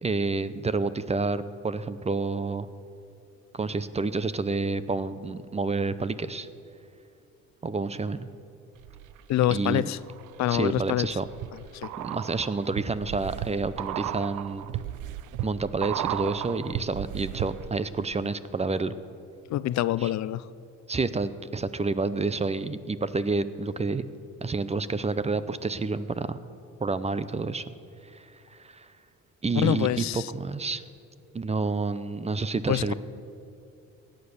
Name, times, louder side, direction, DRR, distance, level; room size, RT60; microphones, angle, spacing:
voice 1, 0.0-2.7 3.5-6.5 7.6-8.3 9.5-9.9 10.5-11.3 12.0-14.7 15.4-19.0 20.0-20.1 20.9-24.1 24.4-26.4 26.8-27.6 28.0-28.9 29.4-30.8 31.3-32.9, right 3 dB, 20° right, 14 dB, 0.6 m, -29 dB
sound 1, 8.8-9.5 10.0-17.9 18.1-18.2, right 12 dB, 80° right, 0.5 m, -35 dB
voice 2, 9.3-10.0 10.4-11.1 11.7-11.9 19.5-20.5 29.6-30.3 32.7-32.9, left 13 dB, 65° left, 17 dB, 0.5 m, -26 dB
17.0 x 9.1 x 6.7 m, 2.7 s
cardioid pair, 90°, 30 cm